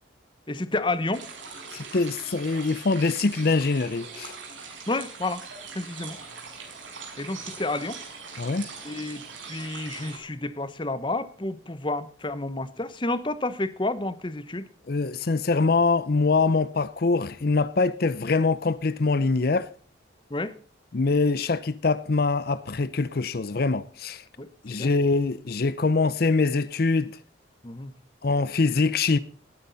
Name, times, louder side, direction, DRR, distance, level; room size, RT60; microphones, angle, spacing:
voice 1, 0.5-1.2 4.9-5.4 5.7-6.2 7.2-8.0 8.8-14.7 20.3-20.5 24.4-24.9 27.6-27.9, left 2 dB, 25° left, 1.0 m, -30 dB
sound 1, 1.1-10.2, right 5 dB, 85° right, 5.4 m, -41 dB
voice 2, 1.7-4.3 8.4-8.7 14.9-19.7 20.9-24.2 24.6-27.2 28.2-29.2, left 3 dB, 50° left, 0.6 m, -24 dB
19.5 x 9.9 x 4.0 m
head